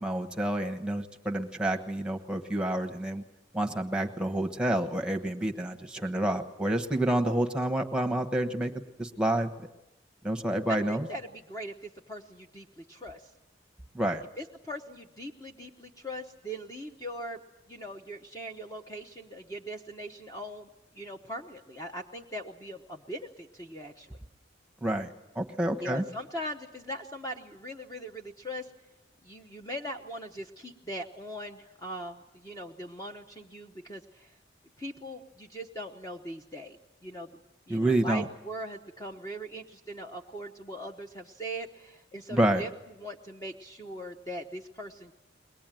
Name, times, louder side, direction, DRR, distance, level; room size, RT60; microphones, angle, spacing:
voice 1, 0.0-3.2 3.5-8.7 9.0-9.5 10.2-11.1 13.9-14.2 24.8-25.1 25.3-26.0 37.7-38.2 42.3-42.6, right 1 dB, 5° right, 4 dB, 1.2 m, -28 dB
voice 2, 10.7-13.2 14.4-17.4 17.7-20.7 20.9-24.2 25.8-28.7 29.2-34.3 34.8-37.4 37.7-42.7 43.0-45.1, equal, 20° left, 4 dB, 0.9 m, -40 dB
22.5 x 19.5 x 9.1 m, 0.94 s
head